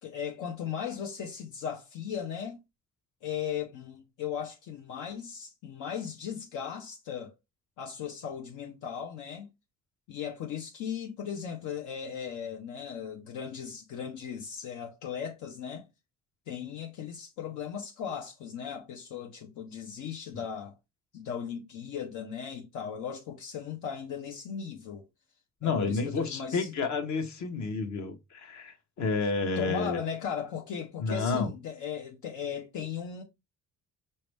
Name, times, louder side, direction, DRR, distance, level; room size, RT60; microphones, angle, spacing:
voice 1, 0.0-2.6 3.2-7.3 7.8-9.5 10.1-15.9 16.5-20.7 21.1-25.0 25.6-26.7 29.6-33.2, left 7 dB, 85° left, 0.8 m, -37 dB
voice 2, 25.6-30.0 31.0-31.5, left 4 dB, 70° left, 1.1 m, -30 dB
5.4 x 2.8 x 3.3 m
cardioid pair, 90°, 30 cm